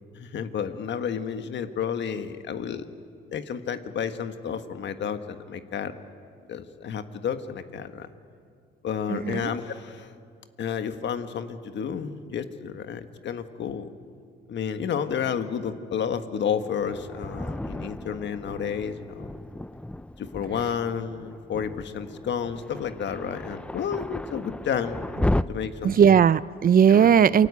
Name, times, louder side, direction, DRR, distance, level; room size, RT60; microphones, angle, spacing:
voice 1, 0.1-2.9 3.3-5.9 6.5-8.1 8.8-10.1 10.6-13.9 14.5-19.3 20.2-25.0 25.5-26.0 26.9-27.1, left 7 dB, 65° left, 9 dB, 1.7 m, -31 dB
voice 2, 9.1-9.5 25.8-27.5, right 8 dB, 45° right, 18 dB, 0.6 m, -18 dB
Thunder, 16.8-25.4, left 1 dB, 5° left, 0.6 m, -34 dB
28.5 x 22.5 x 8.5 m, 2.2 s
cardioid pair, 90°, 20 cm